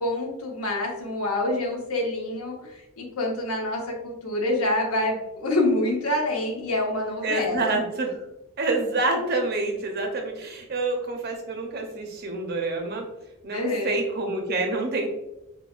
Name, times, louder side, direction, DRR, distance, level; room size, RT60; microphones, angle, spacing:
voice 1, 0.0-7.8 13.5-13.9, left 1 dB, 75° left, 0 dB, 1.0 m, -27 dB
voice 2, 7.2-8.1 8.6-13.1 13.4-15.1, right 2 dB, 45° right, 3 dB, 0.6 m, -27 dB
5.8 x 2.2 x 2.4 m, 0.94 s
head